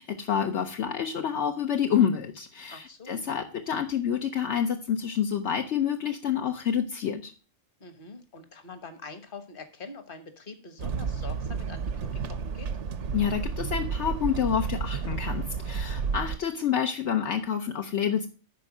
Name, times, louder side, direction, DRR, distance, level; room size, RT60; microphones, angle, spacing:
voice 1, 0.0-7.3 13.1-18.3, left 8 dB, 70° left, 4 dB, 1.1 m, -28 dB
voice 2, 2.7-3.2 7.8-12.7, left 4 dB, 45° left, 9 dB, 1.5 m, -44 dB
sound 1, 10.8-16.4, right 5 dB, 75° right, 1.1 m, -31 dB
11.5 x 4.5 x 6.1 m, 0.35 s
omnidirectional pair, 1.2 m